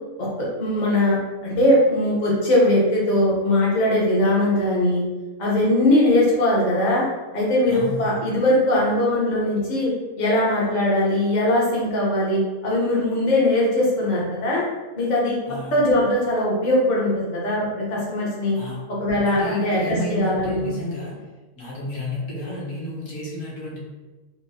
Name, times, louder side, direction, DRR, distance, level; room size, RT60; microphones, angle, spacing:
voice 1, 0.6-1.2 1.4-5.0 5.4-7.0 7.3-9.9 10.2-14.6 15.0-15.4 15.7-18.6 19.0-20.7, left 1 dB, 35° left, -5 dB, 0.8 m, -20 dB
voice 2, 7.7-8.1 15.5-15.8 18.5-18.8 19.2-21.1 21.6-23.8, left 1 dB, 60° left, -6 dB, 1.3 m, -31 dB
3.8 x 2.1 x 2.7 m, 1.2 s
omnidirectional pair, 1.6 m